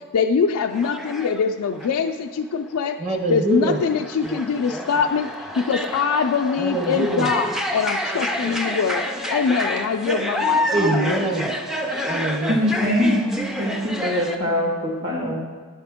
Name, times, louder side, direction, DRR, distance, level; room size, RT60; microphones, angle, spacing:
voice 1, 0.1-3.0 3.3-11.2, left 5 dB, 80° left, 5 dB, 0.4 m, -23 dB
sound 1, 0.7-1.4 1.7-2.1 3.4-14.4, left 1 dB, ahead, 0.3 m, -28 dB
voice 2, 3.0-3.8 6.6-7.3 10.7-11.5 12.0-12.7, right 2 dB, 30° right, 4 dB, 0.7 m, -24 dB
voice 3, 12.5-13.3 13.6-15.4, left 1 dB, 60° right, -1 dB, 1.5 m, -22 dB
9.7 x 5.8 x 3.5 m, 1.5 s
head